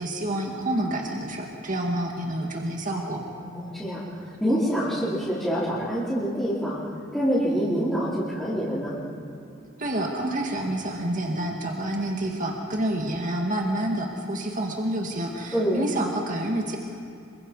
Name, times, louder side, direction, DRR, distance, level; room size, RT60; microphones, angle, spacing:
voice 1, 0.0-3.2 9.8-16.8, right 1 dB, 40° right, 1 dB, 2.1 m, -28 dB
voice 2, 3.4-9.0 15.5-15.8, equal, 5° left, -13 dB, 4.4 m, -26 dB
26.5 x 24.0 x 5.5 m, 2.6 s
head